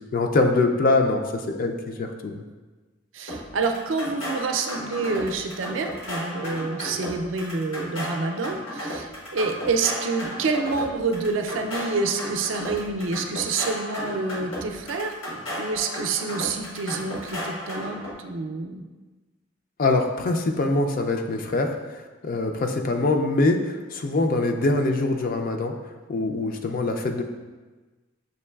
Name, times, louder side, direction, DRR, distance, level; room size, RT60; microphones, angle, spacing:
voice 1, 0.1-2.4 19.8-25.7 26.1-27.2, left 2 dB, 45° left, 4 dB, 0.4 m, -23 dB
voice 2, 3.1-18.8, right 4 dB, 75° right, 5 dB, 0.4 m, -28 dB
sound 1, 3.3-18.1, equal, 80° left, 1.3 m, -34 dB
6.7 x 3.0 x 2.3 m, 1.3 s
head